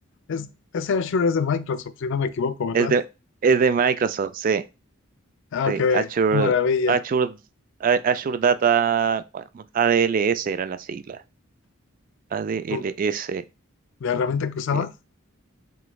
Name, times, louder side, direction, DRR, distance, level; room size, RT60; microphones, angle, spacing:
voice 1, 0.3-3.0 5.5-7.0 12.7-12.8 14.0-14.9, left 5 dB, 65° left, 0.4 m, -24 dB
voice 2, 3.4-4.6 5.7-6.5 6.9-7.3 7.8-11.2 12.3-13.4 14.7-14.8, right 6 dB, 45° right, 0.3 m, -22 dB
4.1 x 3.0 x 2.2 m
head